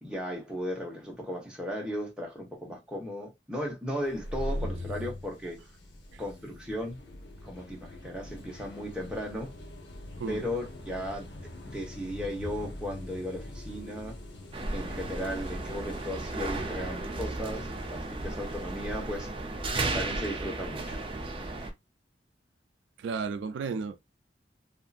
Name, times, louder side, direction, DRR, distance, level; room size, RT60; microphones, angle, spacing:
voice 1, 0.0-5.6 6.2-7.0 7.4-9.5 10.3-11.4 11.6-14.2 14.7-19.3 19.9-21.0, equal, 5° right, 0.8 m, -36 dB
sound 1, 4.0-21.4, left 1 dB, 75° left, 0.7 m, -43 dB
sound 2, 14.5-21.7, right 2 dB, 30° right, 0.5 m, -34 dB
voice 2, 23.0-24.0, right 5 dB, 85° right, 0.3 m, -33 dB
2.7 x 2.5 x 2.3 m
head